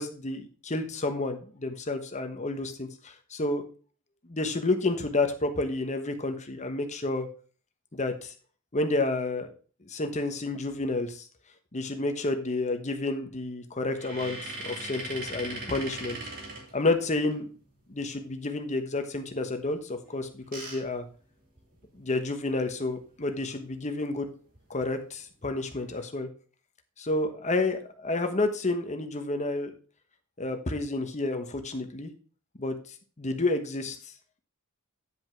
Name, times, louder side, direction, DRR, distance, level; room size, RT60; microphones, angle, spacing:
voice 1, 0.0-3.7 4.3-7.3 7.9-8.3 8.7-9.5 9.8-11.3 11.7-16.2 16.7-17.4 17.9-21.0 22.0-24.3 24.7-26.3 27.0-29.7 30.4-32.1 32.6-32.7 33.2-34.0, left 2 dB, 30° left, 6 dB, 1.1 m, -30 dB
sound 1, 13.9-17.3 20.0-22.0 22.5-22.6 22.8-23.0 24.5-24.9 25.5-26.0, right 1 dB, 40° right, 3.2 m, -40 dB
9.7 x 5.3 x 4.5 m, 0.40 s
head